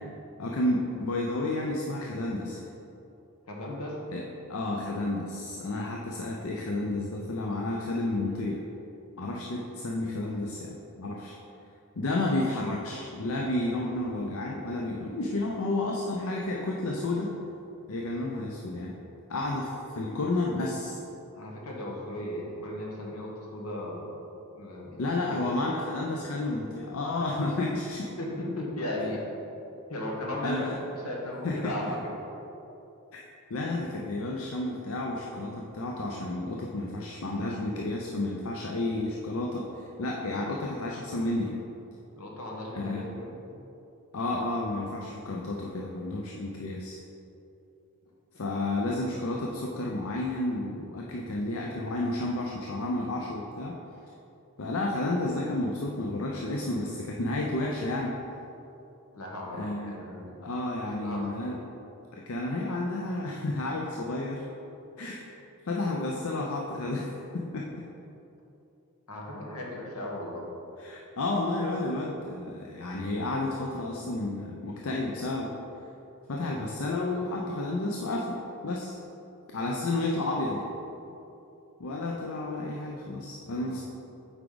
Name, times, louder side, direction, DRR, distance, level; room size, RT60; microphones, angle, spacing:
voice 1, 0.4-2.6 4.1-4.2 4.5-8.6 9.2-11.4 12.0-17.3 17.9-18.9 19.3-21.0 25.0-28.1 30.4-30.8 31.4-31.9 33.1-33.2 33.5-41.5 42.8-43.0 44.1-47.0 48.4-53.8 54.6-58.2 59.5-59.9 60.4-61.6 62.1-64.4 65.0-65.2 65.7-67.9 70.8-75.5 76.3-79.0 79.5-80.7 81.8-83.8, left 2 dB, 70° left, -1 dB, 0.6 m, -31 dB
voice 2, 3.5-4.0 21.3-24.1 24.5-25.7 28.2-29.2 29.9-30.6 31.0-32.1 42.2-43.4 48.8-48.9 59.1-60.4 60.9-61.3 69.1-70.4 83.4-83.8, left 1 dB, 90° left, -2 dB, 1.4 m, -36 dB
8.0 x 4.9 x 3.9 m, 2.9 s
head